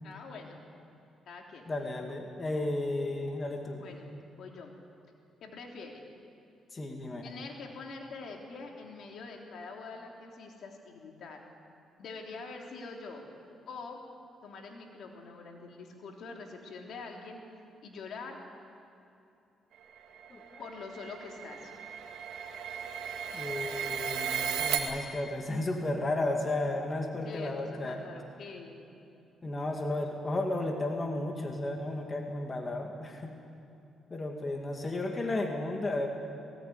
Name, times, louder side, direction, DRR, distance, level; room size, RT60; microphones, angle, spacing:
voice 1, 0.0-0.6 1.3-1.7 3.7-4.7 5.4-6.1 7.2-11.4 12.0-13.2 13.7-14.0 14.4-17.4 17.8-18.4 20.6-21.7 27.2-28.9 35.1-35.3, left 4 dB, 65° left, 1 dB, 3.3 m, -45 dB
voice 2, 1.7-3.9 6.7-7.3 20.3-20.7 23.3-28.0 29.4-33.3 34.1-36.1, left 2 dB, 30° left, 2 dB, 2.4 m, -33 dB
sound 1, 20.0-24.8, right 8 dB, 80° right, 2.3 m, -35 dB
19.5 x 18.0 x 9.5 m, 2.8 s
cardioid pair, 90°, 0 cm